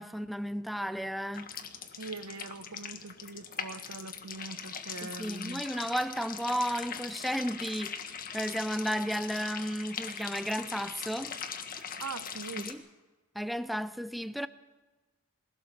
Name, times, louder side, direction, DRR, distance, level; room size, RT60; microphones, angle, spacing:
voice 1, 0.0-1.5 5.0-11.4 12.6-12.8 13.3-14.5, equal, ahead, 0.6 m, -33 dB
sound 1, 1.3-12.7, left 7 dB, 40° left, 1.6 m, -41 dB
voice 2, 2.0-5.6 12.0-12.8, right 3 dB, 75° right, 0.9 m, -42 dB
22.0 x 16.5 x 7.3 m
head